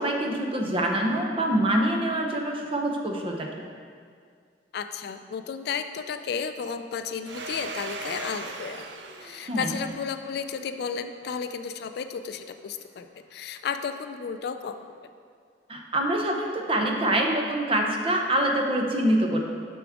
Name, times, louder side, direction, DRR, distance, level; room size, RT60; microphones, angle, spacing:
voice 1, 0.0-3.5 9.5-9.8 15.7-19.4, right 1 dB, 30° right, 1 dB, 0.7 m, -25 dB
voice 2, 4.7-8.9 9.2-14.8, left 6 dB, 60° left, 9 dB, 0.3 m, -33 dB
Domestic sounds home sounds, 7.2-11.7, right 3 dB, 75° right, 0.5 m, -40 dB
7.0 x 5.9 x 3.5 m, 2.1 s
head